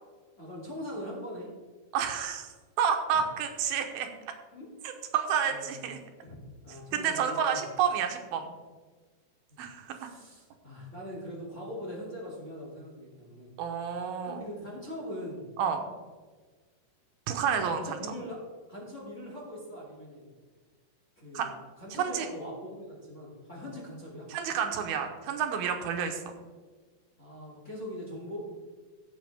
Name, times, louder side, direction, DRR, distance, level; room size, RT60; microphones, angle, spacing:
voice 1, 0.4-1.5 3.1-3.2 4.5-4.6 5.5-5.9 6.2-6.4 6.6-7.6 9.5-9.6 9.9-13.5 14.2-15.5 17.4-18.4 18.7-20.3 21.2-21.5 21.8-24.3 27.2-28.5, left 1 dB, 25° left, -5 dB, 2.1 m, -41 dB
voice 2, 1.9-4.1 5.1-6.0 6.9-8.5 9.6-10.1 13.6-14.4 15.6-15.9 17.3-18.0 21.3-21.5 21.9-22.3 24.3-26.3, right 7 dB, 80° right, 5 dB, 2.7 m, -30 dB
16.5 x 7.4 x 3.5 m, 1.4 s
omnidirectional pair, 4.3 m